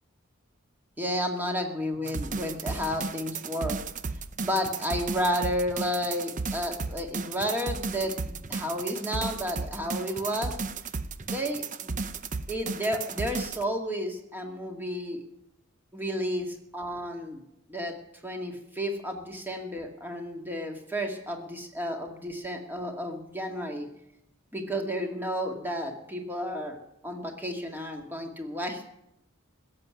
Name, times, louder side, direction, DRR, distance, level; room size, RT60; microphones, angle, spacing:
voice 1, 1.0-3.8 4.4-10.5 11.3-12.0 12.5-15.2 15.9-17.4 17.7-17.9 18.2-23.9 24.5-26.8 27.0-28.8, equal, 10° right, 2 dB, 2.1 m, -32 dB
sound 1, 2.1-13.6, right 4 dB, 35° right, 0.7 m, -34 dB
16.0 x 7.6 x 9.6 m, 0.81 s
head